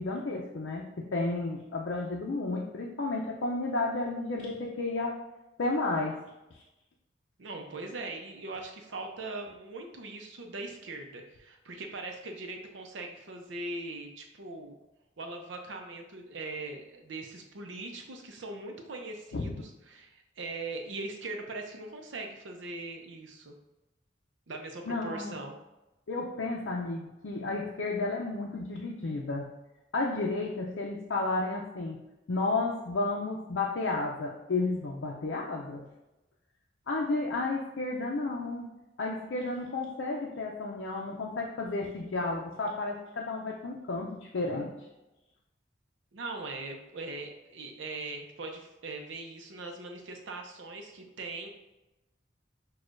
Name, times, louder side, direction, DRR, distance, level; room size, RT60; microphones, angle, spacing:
voice 1, 0.0-5.2 5.6-6.2 6.5-6.6 19.3-19.4 24.9-25.3 26.1-29.5 29.9-32.0 32.3-35.8 36.9-38.7 39.0-44.7, left 2 dB, 75° left, -2 dB, 0.5 m, -32 dB
voice 2, 7.4-14.8 15.2-23.5 24.5-25.6 46.1-51.5, right 2 dB, 75° right, 3 dB, 0.6 m, -40 dB
6.1 x 2.3 x 2.5 m, 0.99 s
head